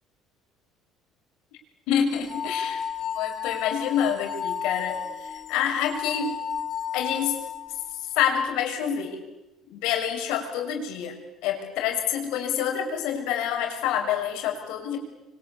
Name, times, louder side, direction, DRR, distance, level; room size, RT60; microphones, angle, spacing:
voice 1, 1.9-6.4 6.9-7.4 8.1-9.2 9.7-15.0, left 8 dB, 80° left, 4 dB, 6.4 m, -27 dB
sound 1, 2.1-8.0, left 8 dB, 30° left, 4.9 m, -33 dB
26.5 x 24.5 x 8.8 m, 0.98 s
cardioid pair, 110°, 0 cm